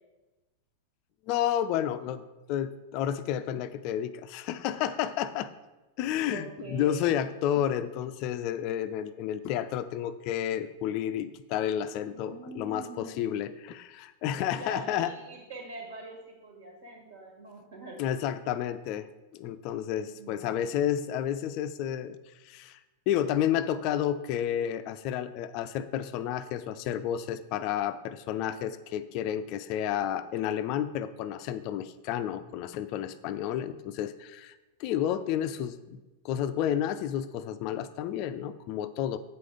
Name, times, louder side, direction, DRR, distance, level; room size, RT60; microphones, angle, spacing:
voice 1, 1.3-2.2 2.5-5.5 6.0-15.1 18.0-22.2 22.4-22.8 23.1-36.0 36.2-39.2, left 10 dB, 45° left, 12 dB, 0.4 m, -31 dB
voice 2, 6.3-7.2 12.0-13.4 14.6-18.0 20.1-20.8, right 2 dB, 65° right, 1 dB, 1.7 m, -44 dB
8.0 x 4.9 x 4.9 m, 1.1 s
figure-of-eight pair, 90°, 0 cm